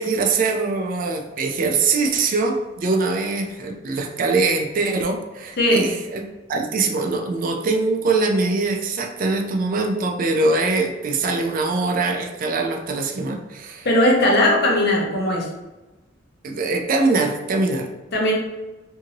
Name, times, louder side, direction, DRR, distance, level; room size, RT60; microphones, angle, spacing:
voice 1, 0.0-6.2 6.5-13.9 16.4-17.9, right 3 dB, 45° right, 3 dB, 0.4 m, -22 dB
voice 2, 13.8-15.5 18.1-18.3, left 1 dB, 60° left, -1 dB, 0.7 m, -18 dB
2.7 x 2.6 x 2.8 m, 1.1 s
head